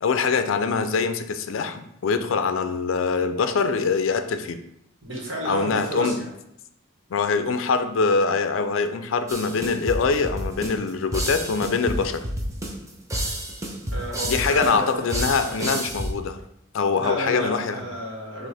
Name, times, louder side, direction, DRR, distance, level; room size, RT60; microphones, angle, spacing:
voice 1, 0.0-4.6 5.5-6.2 7.1-12.2 14.3-16.4 16.7-17.8, left 5 dB, 70° left, 9 dB, 0.4 m, -23 dB
voice 2, 5.0-6.3 13.9-15.7 16.9-18.5, right 1 dB, 70° right, -3 dB, 1.4 m, -32 dB
sound 1, 9.3-16.1, right 1 dB, 15° right, 0.5 m, -30 dB
6.1 x 2.5 x 3.4 m, 0.79 s
head